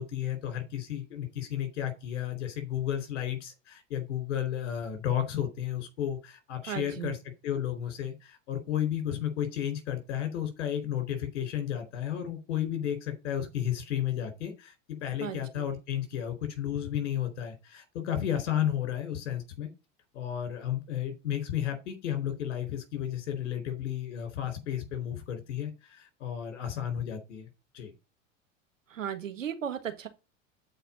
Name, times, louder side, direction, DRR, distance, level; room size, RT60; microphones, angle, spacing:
voice 1, 0.0-19.7 20.1-27.5 27.7-27.9, left 10 dB, 60° left, 4.4 m, -33 dB
voice 2, 6.7-7.1 15.2-15.4 28.9-30.1, right 9 dB, 75° right, 1.6 m, -35 dB
7.9 x 4.9 x 7.3 m
figure-of-eight pair, 80°, 38 cm